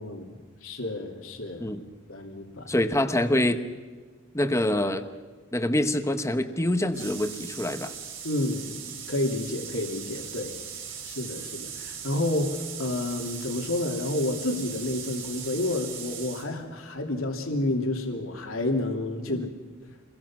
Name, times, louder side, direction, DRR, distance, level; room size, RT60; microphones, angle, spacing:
voice 1, 0.0-1.7 2.1-2.7 8.2-8.7 9.1-10.5 11.0-19.5, left 2 dB, 85° left, 2 dB, 2.9 m, -30 dB
voice 2, 2.7-3.6 4.3-5.0 5.5-7.9 19.3-19.5, left 1 dB, 15° left, 8 dB, 1.1 m, -25 dB
sound 1, 6.9-16.5, right 7 dB, 70° right, 5.2 m, -39 dB
27.5 x 22.0 x 6.1 m, 1.4 s
head